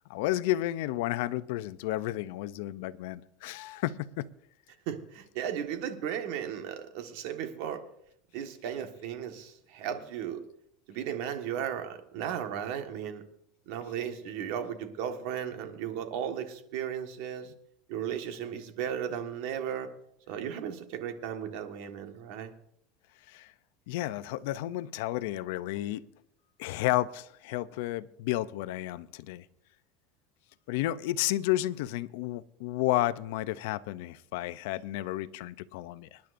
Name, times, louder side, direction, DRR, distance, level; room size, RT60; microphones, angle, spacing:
voice 1, 0.1-4.3 23.3-23.5 23.9-26.0 26.6-29.4 30.7-36.2, left 15 dB, 75° left, 0.5 m, -32 dB
voice 2, 4.9-7.8 8.3-10.4 10.9-13.2 13.7-17.5 17.9-19.9 20.3-22.5, right 9 dB, 65° right, 1.5 m, -35 dB
26.0 x 10.5 x 2.6 m
supercardioid pair, 150°, 0 cm